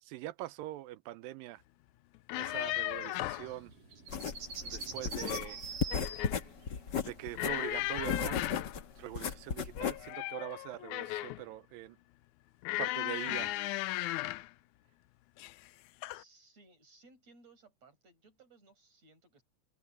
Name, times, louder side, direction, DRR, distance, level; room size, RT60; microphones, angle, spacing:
voice 1, 0.0-1.6 2.4-3.7 4.6-5.6 7.0-12.0 12.8-13.6, right 15 dB, 90° right, 2.5 m, -43 dB
sound 1, 2.2-3.5 5.0-5.6 5.9-6.4 7.4-8.8 9.8-11.4 12.6-14.5 15.4-15.7 16.0-16.2, left 18 dB, 80° left, 1.8 m, -36 dB
sound 2, 2.3-7.8, right 4 dB, 65° right, 5.6 m, -46 dB
sound 3, 4.1-10.1, left 7 dB, 60° left, 1.1 m, -36 dB
voice 2, 16.1-19.4, right 3 dB, 50° right, 8.8 m, -61 dB
open air
omnidirectional pair, 3.9 m